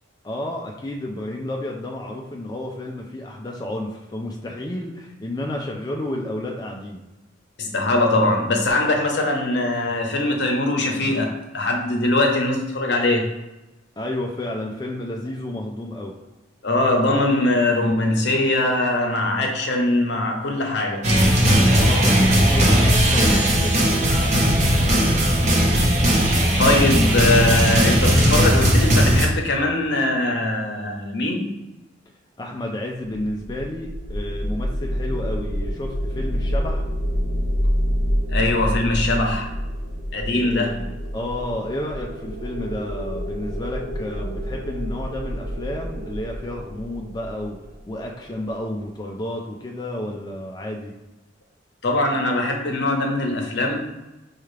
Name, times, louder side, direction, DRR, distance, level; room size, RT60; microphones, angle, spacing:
voice 1, 0.2-7.0 14.0-16.1 21.7-24.3 32.4-36.9 40.3-47.6 47.9-50.9, left 1 dB, 20° left, 0 dB, 0.4 m, -31 dB
voice 2, 7.6-13.3 16.6-21.1 26.6-31.5 38.3-39.5 40.1-40.8 51.8-53.8, left 2 dB, 65° left, 2 dB, 0.8 m, -21 dB
sound 1, 21.0-29.3, equal, 40° right, 0.8 m, -17 dB
sound 2, 33.2-48.3, equal, 80° right, 0.8 m, -28 dB
5.6 x 2.4 x 3.2 m, 1.0 s
head